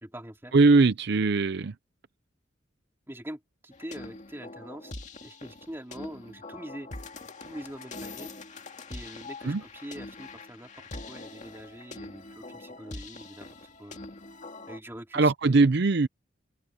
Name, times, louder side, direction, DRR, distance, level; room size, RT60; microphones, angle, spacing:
voice 1, 0.0-0.5 3.1-4.9 5.2-6.9 7.4-8.3 8.9-13.5 13.8-14.1 14.7-15.7, equal, 10° right, 2.6 m, -43 dB
voice 2, 0.5-1.7 9.5-9.6 15.1-16.1, right 3 dB, 60° right, 0.6 m, -21 dB
sound 1, 3.7-14.8, left 2 dB, 40° left, 2.1 m, -43 dB
head